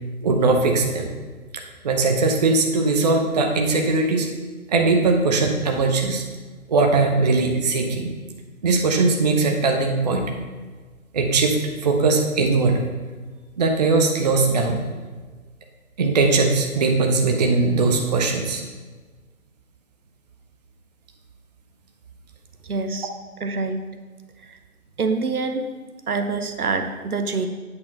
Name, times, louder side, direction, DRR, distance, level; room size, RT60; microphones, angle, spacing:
voice 1, 0.2-1.1 1.5-4.3 4.7-6.2 6.7-8.1 8.6-10.2 11.1-12.8 13.6-14.8 16.0-18.6, right 3 dB, 30° right, 3 dB, 0.6 m, -20 dB
voice 2, 22.7-23.1 23.4-23.8 24.5-24.6 25.0-25.6 26.1-27.5, right 4 dB, 75° right, 7 dB, 1.0 m, -25 dB
8.6 x 4.4 x 5.8 m, 1.4 s
figure-of-eight pair, 140°, 44 cm